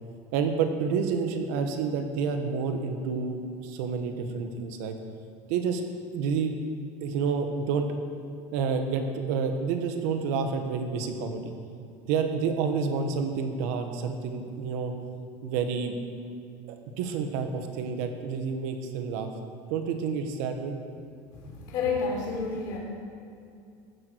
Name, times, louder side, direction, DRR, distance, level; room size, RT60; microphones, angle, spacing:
voice 1, 0.3-4.9 5.5-5.8 6.1-6.5 7.0-7.9 8.5-11.5 12.0-14.9 15.4-15.9 16.7-19.3 19.7-20.7, right 5 dB, 75° right, 6 dB, 1.5 m, -29 dB
voice 2, 21.4-22.8, left 4 dB, 45° left, -2 dB, 3.7 m, -30 dB
15.0 x 12.0 x 4.8 m, 2.4 s
cardioid pair, 170°, 9 cm